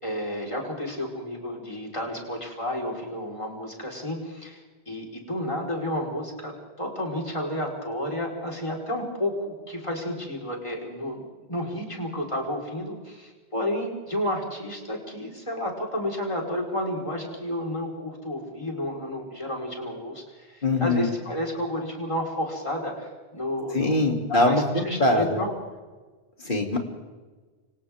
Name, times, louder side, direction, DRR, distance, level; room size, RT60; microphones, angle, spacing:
voice 1, 0.0-24.0 24.3-25.5, left 1 dB, 30° left, -1 dB, 4.7 m, -31 dB
voice 2, 20.6-21.1 23.7-25.4 26.4-26.8, left 2 dB, 50° left, 1 dB, 3.3 m, -22 dB
29.5 x 25.5 x 3.7 m, 1.4 s
omnidirectional pair, 1.1 m